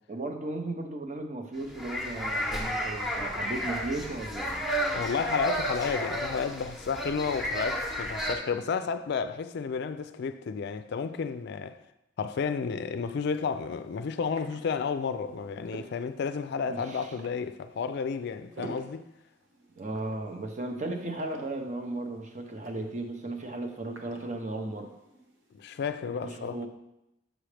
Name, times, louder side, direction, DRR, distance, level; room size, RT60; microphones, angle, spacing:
voice 1, 0.1-4.6 16.7-17.1 19.8-24.9 26.2-26.7, right 2 dB, 40° right, 0.7 m, -35 dB
sound 1, 1.6-8.4, equal, ahead, 0.9 m, -32 dB
voice 2, 4.9-11.8 12.2-19.0 25.5-26.6, left 5 dB, 60° left, 0.4 m, -32 dB
sound 2, 12.9-25.8, right 2 dB, 75° right, 1.0 m, -51 dB
6.2 x 6.2 x 3.3 m
head